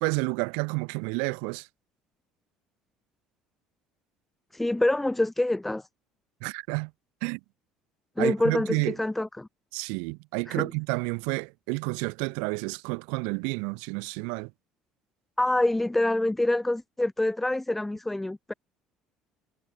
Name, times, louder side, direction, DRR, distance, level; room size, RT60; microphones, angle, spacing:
voice 1, 0.0-1.7 6.4-6.9 7.2-7.4 8.2-8.9 9.7-14.5, right 38 dB, 85° right, 1.4 m, -30 dB
voice 2, 4.5-5.9 8.2-9.5 10.5-10.7 15.4-18.5, left 1 dB, 10° left, 0.9 m, -26 dB
cardioid pair, 110°, 2 cm